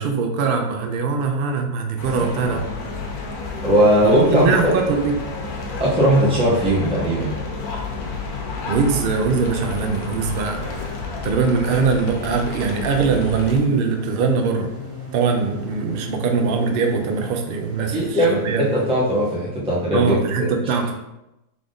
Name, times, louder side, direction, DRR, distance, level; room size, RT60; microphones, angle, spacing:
voice 1, 0.0-2.7 4.0-5.1 8.7-11.0 11.2-14.7 15.1-18.7 19.9-20.9, right 5 dB, 80° right, 4 dB, 0.5 m, -22 dB
sound 1, 2.0-13.6, left 4 dB, 75° left, 1.3 m, -30 dB
voice 2, 2.2-2.6 3.6-4.7 5.8-7.3 17.9-20.5, equal, 5° right, -7 dB, 1.0 m, -19 dB
sound 2, 9.2-19.3, left 4 dB, 40° right, 1.8 m, -37 dB
3.6 x 3.5 x 3.8 m, 0.91 s
omnidirectional pair, 1.7 m